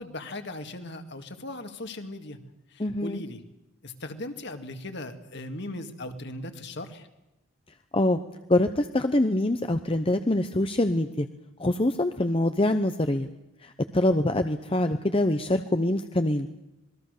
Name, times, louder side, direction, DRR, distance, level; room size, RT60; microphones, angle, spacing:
voice 1, 0.0-2.4 2.7-3.4 3.8-7.1, left 1 dB, 55° left, 7 dB, 2.2 m, -38 dB
voice 2, 2.8-3.2 7.9-8.2 8.5-11.3 11.6-13.3 13.6-16.5, left 1 dB, 25° left, 8 dB, 0.8 m, -24 dB
26.5 x 21.0 x 6.7 m, 0.91 s
head